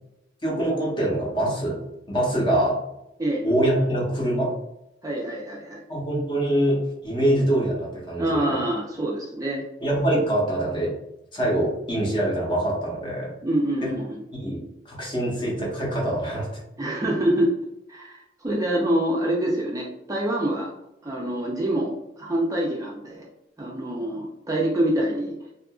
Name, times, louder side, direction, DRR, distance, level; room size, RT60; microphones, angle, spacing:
voice 1, 0.4-2.8 3.4-4.5 5.9-8.6 9.8-11.0 11.3-13.3 13.8-13.9 14.4-14.6 14.9-16.5, right 1 dB, 25° left, -3 dB, 0.8 m, -24 dB
voice 2, 5.0-5.8 8.2-9.6 13.4-14.2 16.8-17.5 17.9-20.7 21.0-23.3 23.6-25.3, right 1 dB, 20° right, -3 dB, 0.4 m, -26 dB
2.7 x 2.4 x 2.3 m, 0.86 s
head